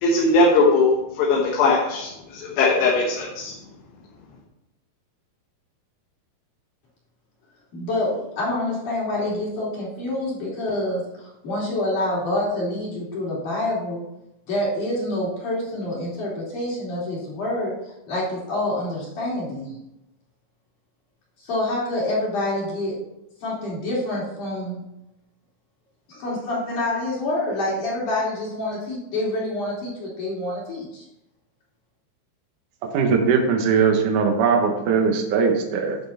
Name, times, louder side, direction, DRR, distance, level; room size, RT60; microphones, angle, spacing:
voice 1, 0.0-3.5, left 3 dB, 70° left, -2 dB, 3.2 m, -20 dB
voice 2, 7.7-14.0 14.5-17.7 18.1-19.8 21.4-23.0 23.4-24.8 26.1-31.0, left 1 dB, 45° left, -7 dB, 4.2 m, -27 dB
voice 3, 32.9-36.0, right 5 dB, 70° right, 3 dB, 2.0 m, -20 dB
11.5 x 6.0 x 4.3 m, 0.89 s
omnidirectional pair, 5.3 m